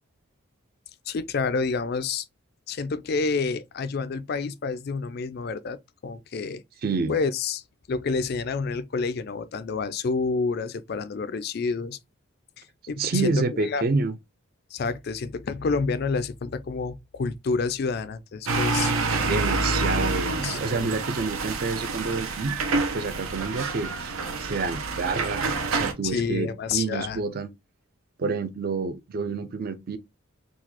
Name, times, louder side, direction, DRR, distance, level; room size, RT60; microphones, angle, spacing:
voice 1, 1.1-2.2 2.7-6.6 7.1-7.6 7.9-12.0 12.9-13.3 13.6-13.8 14.7-18.9 20.3-20.9 26.0-27.2, left 4 dB, 50° left, 0.3 m, -28 dB
voice 2, 6.8-7.2 13.0-14.1 19.0-22.6 22.9-27.5 28.2-30.0, right 4 dB, 45° right, 0.4 m, -28 dB
sound 1, 18.5-25.9, right 3 dB, 80° right, 0.7 m, -27 dB
3.9 x 2.3 x 2.8 m
head